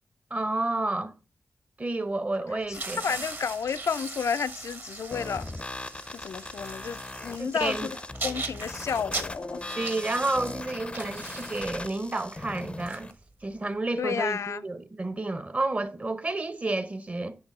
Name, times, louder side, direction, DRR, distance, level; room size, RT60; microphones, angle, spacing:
voice 1, 0.3-1.1 1.8-3.0 7.3-7.9 9.8-13.1 13.4-17.4, right 2 dB, 30° right, 0.7 m, -30 dB
voice 2, 2.5-5.5 6.1-7.9 8.2-9.6 14.0-14.6, left 6 dB, 80° left, 0.4 m, -31 dB
sound 1, 2.6-13.7, right 3 dB, 45° right, 1.1 m, -40 dB
sound 2, 5.1-13.1, left 2 dB, 20° left, 0.5 m, -39 dB
8.7 x 3.8 x 5.3 m
wide cardioid pair, 95°, 5 cm